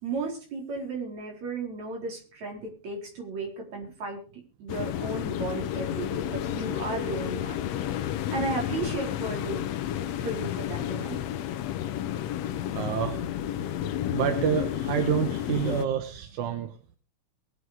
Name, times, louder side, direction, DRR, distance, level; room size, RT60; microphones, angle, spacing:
voice 1, 0.0-7.6 8.3-9.6 10.2-11.2, right 3 dB, 70° right, 0 dB, 5.4 m, -34 dB
sound 1, 4.7-15.8, left 11 dB, 70° left, 1.9 m, -31 dB
voice 2, 12.7-13.2 14.1-16.8, right 9 dB, 90° right, 6 dB, 2.7 m, -28 dB
22.0 x 7.9 x 4.9 m, 0.38 s
omnidirectional pair, 3.3 m